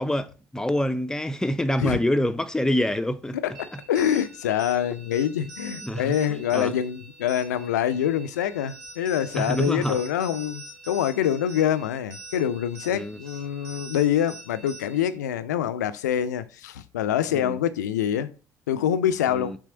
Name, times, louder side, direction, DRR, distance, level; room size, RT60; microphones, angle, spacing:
voice 1, 0.0-3.4 5.8-6.7 9.4-10.0 12.9-13.2 17.3-17.6 19.3-19.6, equal, 5° left, 0.6 m, -26 dB
voice 2, 3.3-18.3 18.7-19.5, left 10 dB, 80° left, 0.5 m, -25 dB
sound 1, 3.5-15.1, right 2 dB, 50° right, 2.9 m, -44 dB
6.2 x 3.4 x 5.6 m
figure-of-eight pair, 55°, 9 cm